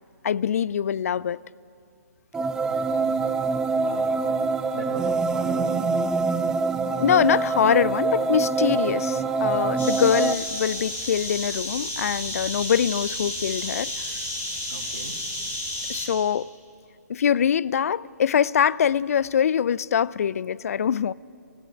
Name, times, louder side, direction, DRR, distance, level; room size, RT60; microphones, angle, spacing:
voice 1, 0.2-1.4 6.9-13.9 15.9-16.5 17.1-21.1, left 8 dB, 55° left, 0.4 m, -23 dB
sound 1, 2.3-10.3, right 4 dB, 5° right, 0.4 m, -25 dB
voice 2, 2.6-3.3 3.8-4.3 4.7-5.9 14.7-15.1, right 4 dB, 75° right, 2.5 m, -38 dB
sound 2, 9.8-16.1, left 1 dB, 20° left, 5.1 m, -32 dB
18.5 x 15.0 x 9.8 m
figure-of-eight pair, 145°, 9 cm